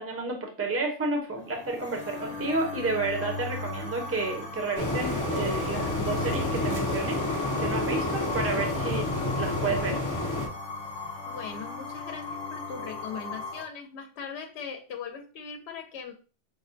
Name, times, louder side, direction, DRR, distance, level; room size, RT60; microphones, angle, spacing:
voice 1, 0.0-9.1 9.4-10.0, right 3 dB, 15° right, 2 dB, 0.6 m, -31 dB
sound 1, 1.3-13.6, left 2 dB, 45° left, 0.9 m, -37 dB
sound 2, 4.8-10.5, left 2 dB, 25° left, 0.4 m, -29 dB
voice 2, 11.3-16.1, left 6 dB, 70° left, 5 dB, 0.9 m, -40 dB
5.2 x 2.1 x 2.5 m, 0.35 s
omnidirectional pair, 1.2 m